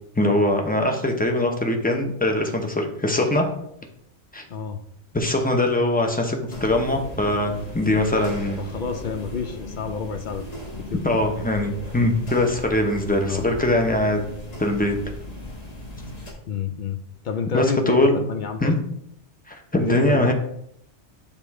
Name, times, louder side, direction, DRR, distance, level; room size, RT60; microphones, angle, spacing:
voice 1, 0.2-3.5 4.3-4.4 5.1-8.6 11.0-14.2 14.6-15.0 17.5-18.3 18.6-18.8 19.5-20.3, left 1 dB, 10° left, 2 dB, 0.6 m, -22 dB
voice 2, 4.5-4.8 8.6-10.4 10.9-11.3 13.3-13.4 16.5-17.0 17.2-18.7 19.8-20.3, left 6 dB, 60° left, 8 dB, 0.5 m, -29 dB
sound 1, 6.5-16.3, left 1 dB, 35° left, 1.3 m, -37 dB
6.7 x 3.7 x 4.7 m, 0.71 s
omnidirectional pair, 1.2 m